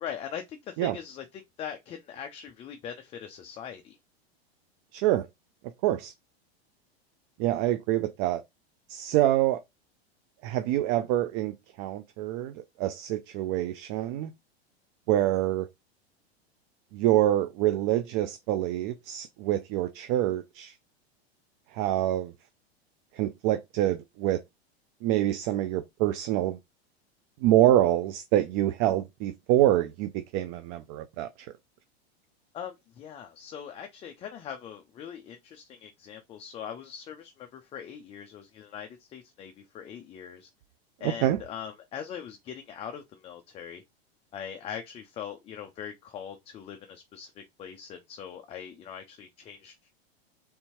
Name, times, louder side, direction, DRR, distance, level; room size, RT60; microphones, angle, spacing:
voice 1, 0.0-4.0 32.5-40.5 41.0-43.8 44.3-49.9, left 8 dB, 20° left, 0.3 m, -41 dB
voice 2, 4.9-5.3 5.8-6.1 7.4-8.4 8.9-9.6 10.4-14.3 15.1-15.7 16.9-20.7 21.7-22.3 23.2-24.4 25.0-26.6 27.4-31.5 41.0-41.4, right 13 dB, 45° right, 0.4 m, -26 dB
3.5 x 2.7 x 2.9 m
hypercardioid pair, 115°, 32 cm